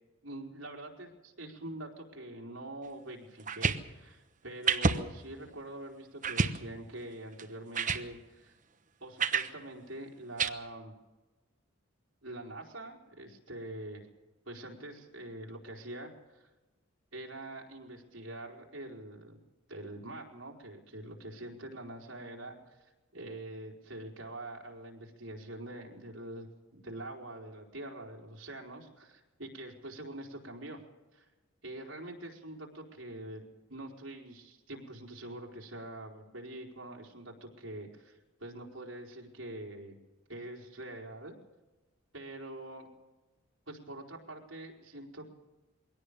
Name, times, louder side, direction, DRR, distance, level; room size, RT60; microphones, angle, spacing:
voice 1, 0.2-8.5 9.0-10.9 12.2-14.1 14.5-16.5 17.1-19.4 19.7-26.5 26.7-30.8 31.1-31.2 31.6-33.4 33.7-39.9 40.3-41.4 42.1-42.9 43.7-45.2, right 1 dB, 70° right, 1 dB, 4.4 m, -45 dB
sound 1, 3.4-3.8 4.7-5.0 5.5-5.6 6.2-6.6 7.4-7.5 7.7-8.0 9.2-9.5 10.4-10.5, right 5 dB, 40° right, 1.1 m, -28 dB
22.5 x 17.5 x 6.9 m, 1.1 s
head